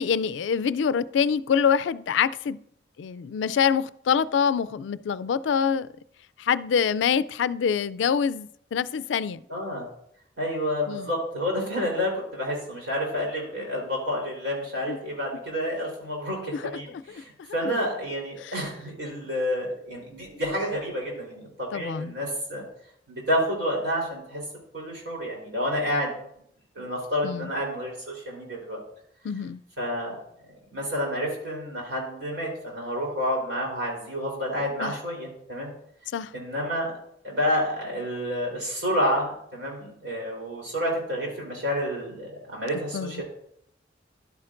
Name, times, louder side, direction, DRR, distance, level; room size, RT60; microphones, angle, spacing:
voice 1, 0.0-2.6 3.0-5.9 6.4-9.4 10.9-11.1 14.9-15.0 16.5-16.7 17.6-17.7 18.4-18.6 21.7-22.2 27.2-27.5 29.2-29.6 34.8-34.9 36.1-36.3 42.9-43.2, left 7 dB, 85° left, 0.3 m, -25 dB
voice 2, 9.5-9.9 10.4-22.6 23.1-24.4 24.7-26.1 26.8-28.8 29.8-30.2 30.7-35.7 36.3-36.9 37.2-43.2, equal, 85° right, 3.8 m, -29 dB
11.5 x 8.7 x 2.5 m
head